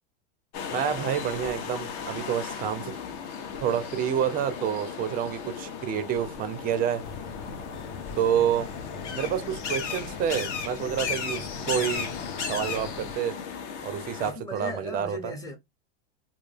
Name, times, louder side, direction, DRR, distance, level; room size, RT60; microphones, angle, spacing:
sound 1, 0.5-14.3, left 7 dB, 50° left, 0.6 m, -38 dB
voice 1, 0.7-3.0 3.6-7.0 8.2-8.7 9.1-12.1 12.5-13.4 13.8-15.3, right 9 dB, 25° right, 0.4 m, -28 dB
sound 2, 7.0-13.1, left 6 dB, 85° left, 0.8 m, -35 dB
voice 2, 14.2-15.6, equal, 10° left, 0.7 m, -37 dB
2.2 x 2.1 x 3.1 m
supercardioid pair, 120°, 34 cm